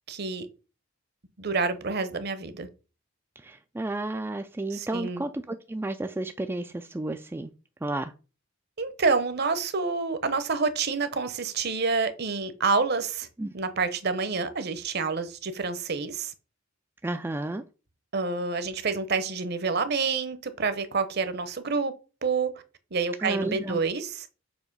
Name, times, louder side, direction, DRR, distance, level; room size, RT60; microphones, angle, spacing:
voice 1, 0.1-0.5 1.4-2.7 4.7-5.2 8.8-13.3 13.5-16.3 18.1-21.9 22.2-22.5 22.9-24.3, right 4 dB, 50° right, 12 dB, 0.8 m, -28 dB
voice 2, 3.4-7.5 7.8-8.1 13.4-13.5 17.0-17.6 23.2-23.8, right 2 dB, 10° right, 7 dB, 0.3 m, -32 dB
7.1 x 3.0 x 5.3 m, 0.33 s
head